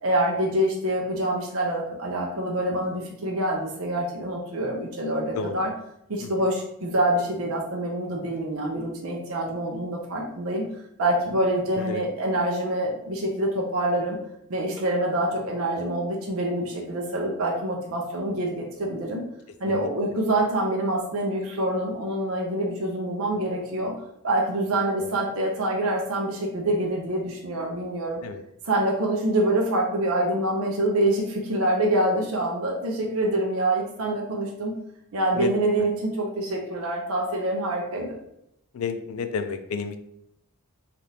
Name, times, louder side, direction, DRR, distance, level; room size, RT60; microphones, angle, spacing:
voice 1, 0.0-5.7 6.1-10.6 11.0-14.2 14.5-19.2 19.6-23.9 24.2-28.2 28.6-34.7 35.1-38.2, right 1 dB, 70° right, -1 dB, 0.6 m, -26 dB
voice 2, 11.8-12.1 19.7-19.9 25.0-25.2 28.2-28.4 35.4-35.5 38.7-40.0, left 5 dB, 65° left, 9 dB, 0.3 m, -31 dB
3.3 x 2.4 x 2.7 m, 0.77 s
head